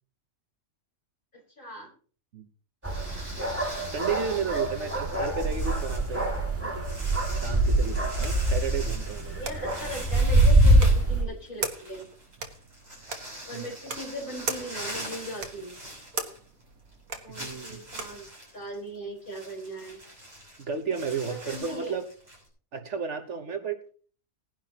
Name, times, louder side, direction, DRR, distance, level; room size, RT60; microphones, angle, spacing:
voice 1, 1.6-1.9 4.5-4.9 9.3-12.1 13.5-15.7 17.2-18.3 18.5-20.0 21.3-22.0, right 1 dB, 35° left, -2 dB, 5.1 m, -39 dB
sound 1, 2.8-11.2, right 1 dB, 10° right, 2.0 m, -24 dB
sound 2, 2.8-16.6 16.9-17.0 17.3-22.5, right 1 dB, 30° right, 7.3 m, -43 dB
voice 2, 3.9-6.3 6.6-6.9 7.4-9.4 13.5-13.7 17.3-17.8 20.6-22.1 22.7-23.8, right 6 dB, 60° right, 8 dB, 1.3 m, -33 dB
switch button on off, 7.6-18.3, right 4 dB, 80° right, 1.9 m, -41 dB
19.5 x 11.0 x 2.9 m, 0.41 s
omnidirectional pair, 1.4 m